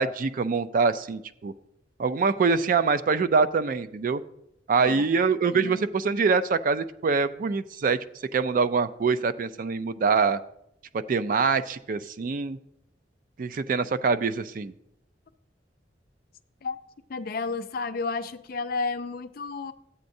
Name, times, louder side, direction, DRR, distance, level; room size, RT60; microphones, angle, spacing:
voice 1, 0.0-1.5 2.0-4.2 4.7-8.0 8.3-10.4 10.9-12.6 13.4-14.7, right 5 dB, 50° right, 13 dB, 0.4 m, -24 dB
voice 2, 4.7-5.1 5.5-5.9 16.6-16.8 17.1-19.7, left 4 dB, 55° left, 10 dB, 0.5 m, -32 dB
12.5 x 8.4 x 2.6 m, 0.79 s
head